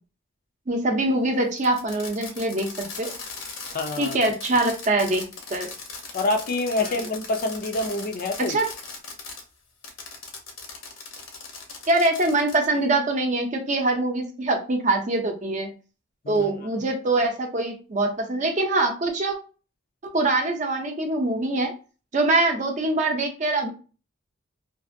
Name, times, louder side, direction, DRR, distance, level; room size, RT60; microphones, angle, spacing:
voice 1, 0.7-3.1 4.0-5.7 6.8-7.1 8.4-8.7 11.9-15.7 16.3-19.4 20.0-21.7 22.1-23.7, right 2 dB, 40° right, 0.6 m, -24 dB
Fireworks, 1.6-9.4 9.8-12.7, left 4 dB, 75° left, 0.8 m, -39 dB
voice 2, 3.7-4.2 6.1-8.6 16.2-16.5, left 2 dB, 45° left, 0.4 m, -26 dB
2.6 x 2.5 x 2.6 m
head